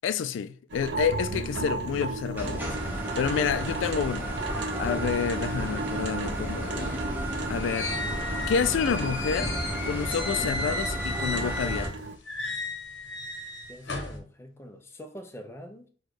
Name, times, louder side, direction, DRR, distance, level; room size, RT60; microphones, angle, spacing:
voice 1, 0.0-4.3 4.8-7.0 7.5-9.5 9.8-12.1, left 7 dB, 90° left, 0.3 m, -29 dB
sound 1, 0.7-12.2, right 3 dB, 70° right, 0.4 m, -36 dB
sound 2, 2.4-11.9, right 1 dB, 10° right, 0.8 m, -33 dB
sound 3, 7.2-11.9 12.3-14.2, left 2 dB, 70° left, 0.9 m, -35 dB
voice 2, 13.7-15.9, equal, 15° left, 0.5 m, -44 dB
4.4 x 2.3 x 4.6 m
head